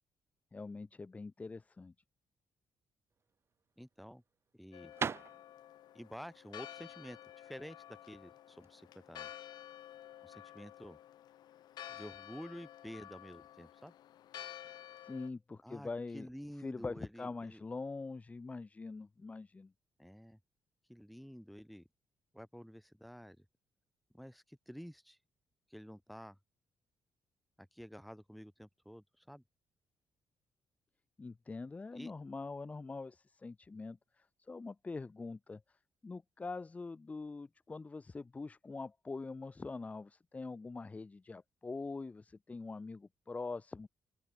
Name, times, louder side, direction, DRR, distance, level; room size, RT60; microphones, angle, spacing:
voice 1, 0.5-1.9 15.0-16.3 16.6-19.7 31.2-35.6 36.0-43.9, left 3 dB, 20° left, 1.6 m, -44 dB
sound 1, 3.1-8.7, right 6 dB, 35° right, 2.5 m, -43 dB
voice 2, 3.8-4.2 4.5-4.9 5.9-9.3 10.2-11.0 11.9-13.9 15.6-17.6 20.0-20.4 20.9-21.8 22.3-23.5 24.1-25.2 25.7-26.4 27.6-29.4 31.9-32.1, equal, ahead, 5.4 m, -50 dB
Church bell, 4.7-15.3, left 12 dB, 75° left, 2.1 m, -51 dB
open air
cardioid pair, 145°, 7 cm